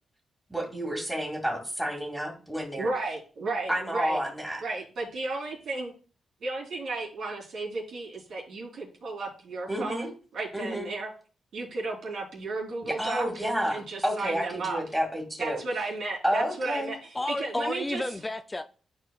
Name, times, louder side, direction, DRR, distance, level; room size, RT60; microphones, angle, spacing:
voice 1, 0.5-2.9 3.7-4.6 9.7-10.1 10.5-10.9 12.8-15.6 16.2-16.9, equal, 5° right, 2.4 m, -30 dB
voice 2, 2.8-4.2 4.6-5.9 6.4-11.1 11.5-13.3 13.7-14.8 15.4-18.0, right 3 dB, 70° right, 3.3 m, -34 dB
voice 3, 17.1-18.6, left 2 dB, 20° left, 0.4 m, -31 dB
12.0 x 4.6 x 2.4 m
cardioid pair, 70°, 0 cm